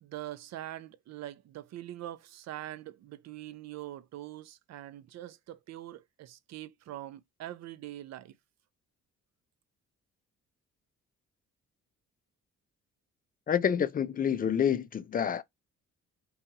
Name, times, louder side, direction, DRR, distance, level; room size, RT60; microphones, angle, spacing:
voice 1, 0.0-8.3, right 13 dB, 60° right, 0.5 m, -43 dB
voice 2, 13.5-15.4, left 8 dB, 30° left, 0.3 m, -28 dB
2.7 x 2.4 x 2.6 m
cardioid pair, 90°, 30 cm